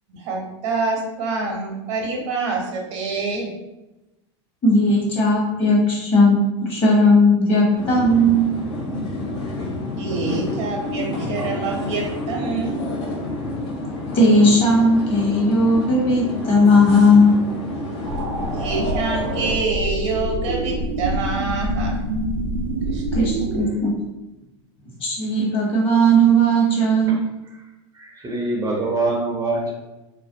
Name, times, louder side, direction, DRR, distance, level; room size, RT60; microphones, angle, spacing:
voice 1, 0.1-3.5 9.9-12.8 18.5-22.0 22.9-23.0, right 3 dB, 70° right, 0 dB, 0.7 m, -26 dB
voice 2, 4.6-6.4 6.7-8.5 14.1-17.3 23.1-24.0 25.0-27.2, equal, 35° left, -3 dB, 1.0 m, -16 dB
sound 1, 7.7-19.5, left 2 dB, 70° left, 0.7 m, -29 dB
sound 2, 18.1-23.7, right 1 dB, 90° right, 0.4 m, -26 dB
voice 3, 27.9-29.7, right 2 dB, 20° right, -2 dB, 0.5 m, -24 dB
2.5 x 2.0 x 2.6 m, 1.0 s
hypercardioid pair, 95°, 15 cm